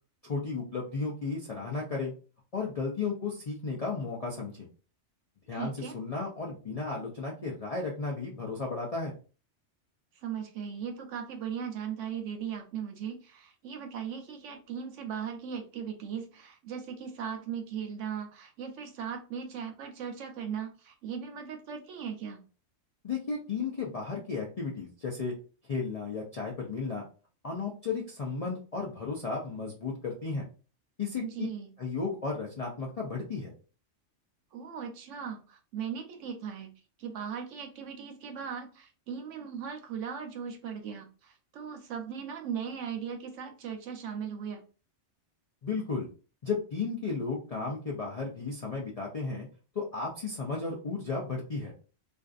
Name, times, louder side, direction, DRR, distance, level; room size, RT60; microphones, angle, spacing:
voice 1, 0.2-2.1 2.5-4.7 5.5-9.1 23.0-25.3 25.7-27.0 27.4-30.5 31.0-31.5 31.8-33.5 45.6-46.1 46.4-49.5 49.8-51.7, left 4 dB, 60° left, -2 dB, 0.4 m, -34 dB
voice 2, 5.5-5.9 10.2-22.4 31.2-31.7 34.5-36.7 37.0-44.6, right 7 dB, 85° right, 5 dB, 1.0 m, -38 dB
2.5 x 2.3 x 2.4 m, 0.36 s
omnidirectional pair, 1.2 m